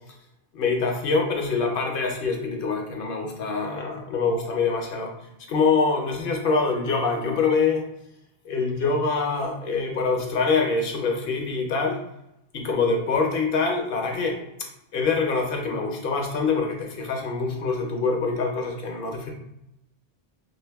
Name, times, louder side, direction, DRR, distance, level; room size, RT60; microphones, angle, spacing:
voice 1, 0.5-5.1 5.5-7.8 8.4-12.0 12.5-14.4 14.9-19.3, left 4 dB, 65° left, 1 dB, 0.7 m, -25 dB
2.5 x 2.5 x 3.3 m, 0.83 s
omnidirectional pair, 1.1 m